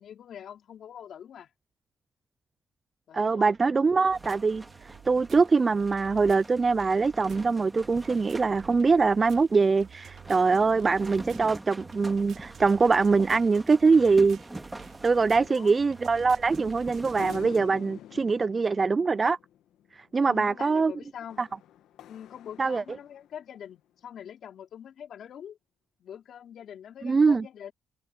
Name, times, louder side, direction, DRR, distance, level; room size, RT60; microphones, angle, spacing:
voice 1, 0.0-1.5 3.1-3.5 15.4-15.8 20.2-21.5 22.1-25.6 26.0-27.7, left 9 dB, 65° left, 4.4 m, -44 dB
voice 2, 3.1-14.4 15.0-19.4 19.9-20.9 21.4-21.5 22.6-22.8 27.0-27.5, right 4 dB, 30° right, 0.3 m, -23 dB
sound 1, 4.0-17.6, right 9 dB, 65° right, 3.7 m, -50 dB
sound 2, 4.1-17.4, right 2 dB, 15° right, 2.4 m, -45 dB
sound 3, 17.2-19.9 21.3-23.4, left 11 dB, 80° left, 1.7 m, -46 dB
cardioid pair, 90°, 0 cm